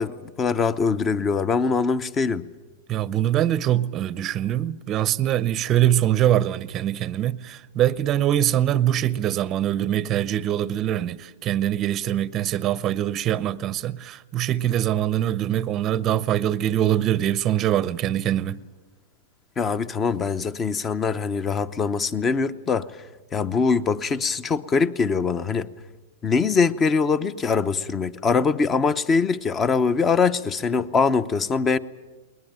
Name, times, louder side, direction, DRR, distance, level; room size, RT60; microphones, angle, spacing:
voice 1, 0.0-2.4 19.6-22.9 23.3-25.7 26.2-31.8, left 5 dB, 20° left, 0.8 m, -23 dB
voice 2, 2.9-18.6, right 11 dB, 30° right, 0.7 m, -23 dB
21.0 x 20.0 x 9.0 m
hypercardioid pair, 130°, 0 cm